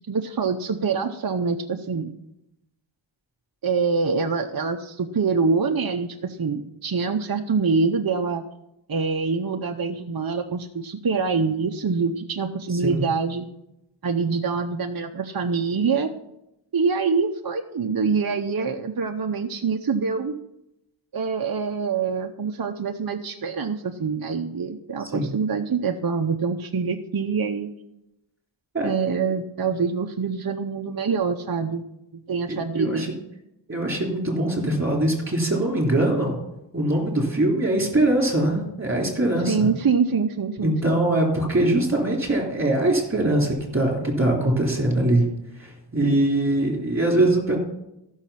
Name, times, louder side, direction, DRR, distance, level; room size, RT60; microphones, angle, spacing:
voice 1, 0.1-2.1 3.6-8.4 8.9-13.5 14.0-16.1 16.7-20.3 21.1-27.7 28.8-31.8 32.3-33.1 39.5-41.0, right 5 dB, 50° right, 4 dB, 0.8 m, -25 dB
voice 2, 12.7-13.0 25.1-25.3 28.7-28.9 32.5-33.1 33.7-36.4 36.7-39.7 40.6-45.3 45.6-47.6, right 1 dB, 25° right, 0 dB, 3.7 m, -22 dB
14.5 x 6.4 x 5.7 m, 0.87 s
wide cardioid pair, 55°, 47 cm